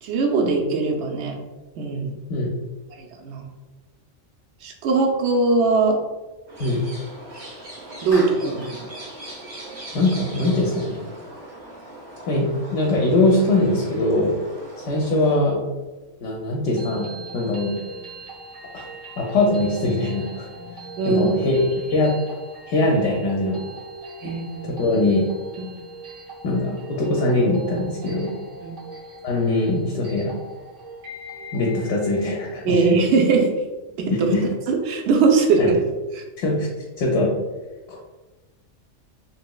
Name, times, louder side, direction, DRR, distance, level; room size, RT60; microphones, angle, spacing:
voice 1, 0.0-1.3 1.8-2.1 3.0-3.4 4.6-6.0 8.0-8.9 21.0-21.4 24.2-24.8 28.6-28.9 32.6-33.5 34.0-34.3 34.7-35.8 36.1-36.2, right 4 dB, 70° right, 2 dB, 0.8 m, -20 dB
sound 1, 6.5-15.4, right 1 dB, 35° right, 0.6 m, -40 dB
Clapping, 8.1-8.8, equal, 20° left, 0.5 m, -36 dB
voice 2, 9.9-11.0 12.3-14.3 14.8-15.6 16.2-17.8 18.7-18.9 19.2-20.5 21.0-22.1 22.7-23.6 24.6-25.3 26.4-28.3 29.2-30.4 31.5-33.0 34.1-34.4 35.6-35.7 36.4-36.7 37.0-37.3 37.9-38.0, left 2 dB, 70° left, -1 dB, 0.8 m, -22 dB
sound 2, 16.5-32.5, right 3 dB, 90° right, 1.5 m, -39 dB
3.1 x 2.8 x 2.2 m, 1.2 s
omnidirectional pair, 1.3 m